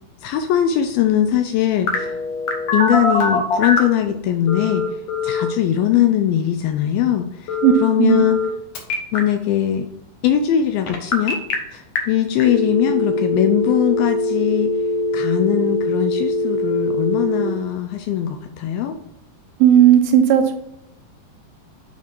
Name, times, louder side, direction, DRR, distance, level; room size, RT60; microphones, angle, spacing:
voice 1, 0.2-2.2 2.7-5.0 5.2-7.6 7.8-8.4 9.1-9.9 10.2-11.4 11.7-14.7 15.1-19.0, left 10 dB, 80° left, 7 dB, 2.3 m, -20 dB
Telephone, 1.9-4.0 4.5-5.5 7.5-8.5 8.7-9.2 10.9-11.5 12.0-12.1 12.4-17.4, left 3 dB, 60° left, 1.9 m, -22 dB
voice 2, 7.6-8.3 19.6-20.5, right 10 dB, 80° right, 6 dB, 2.3 m, -14 dB
7.1 x 4.4 x 4.5 m, 0.77 s
omnidirectional pair, 4.5 m